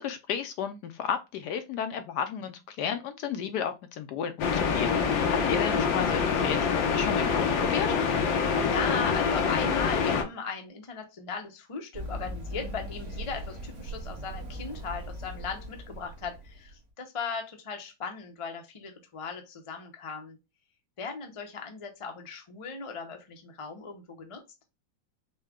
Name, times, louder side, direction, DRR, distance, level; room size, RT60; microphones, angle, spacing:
voice 1, 0.0-8.0, left 7 dB, 70° left, 1.1 m, -33 dB
sound 1, 4.4-10.2, left 6 dB, 85° left, 1.6 m, -26 dB
voice 2, 8.3-20.4 21.0-24.4, left 5 dB, 35° left, 0.5 m, -37 dB
Run, 11.9-16.7, equal, 45° right, 1.5 m, -39 dB
5.4 x 2.2 x 3.5 m
omnidirectional pair, 2.0 m